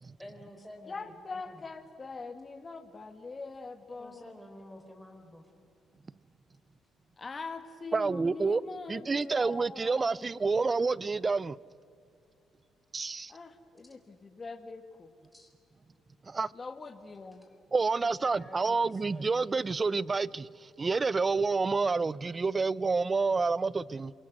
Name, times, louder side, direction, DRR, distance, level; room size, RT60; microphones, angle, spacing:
voice 1, 0.2-1.7 3.9-5.5 15.3-15.5 17.4-17.6 18.0-19.5 20.0-20.1, left 1 dB, 5° left, 3 dB, 4.4 m, -50 dB
voice 2, 0.9-4.3 7.2-10.6 13.3-15.1 16.5-17.5, left 3 dB, 35° left, 7 dB, 2.1 m, -43 dB
voice 3, 7.9-8.6 8.9-11.6 12.9-13.3 16.2-16.5 17.7-24.1, right 4 dB, 30° right, 22 dB, 0.5 m, -29 dB
27.5 x 24.5 x 6.3 m, 2.5 s
cardioid pair, 90°, 0 cm